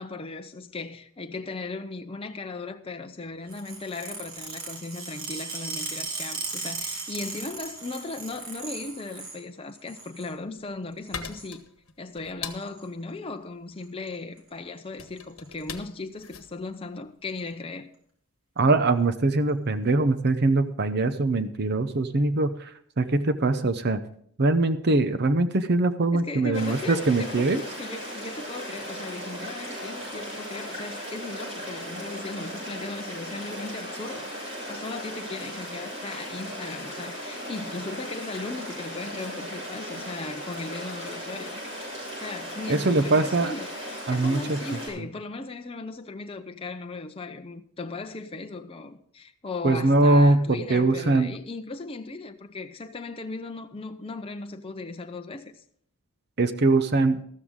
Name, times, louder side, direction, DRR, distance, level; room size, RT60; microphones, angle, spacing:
voice 1, 0.0-11.6 12.0-17.9 26.1-41.6 42.2-43.7 44.1-55.6, left 3 dB, 25° left, 0.6 m, -37 dB
sound 1, 3.5-9.4 9.7-10.3 11.0-11.5 12.6-12.8 13.8-14.1 14.4-14.5 14.8-14.9 15.2-15.6 16.3-16.4 17.3-17.4, right 4 dB, 65° right, 3.5 m, -37 dB
sound 2, 10.5-17.7, left 6 dB, 65° left, 1.3 m, -42 dB
voice 2, 18.6-22.7 23.0-24.0 24.4-27.6 42.7-43.5 44.1-44.6 49.6-51.3 56.4-57.2, right 2 dB, 45° right, 0.7 m, -22 dB
sound 3, 26.5-44.9, equal, 30° right, 6.8 m, -37 dB
13.5 x 13.5 x 3.7 m
head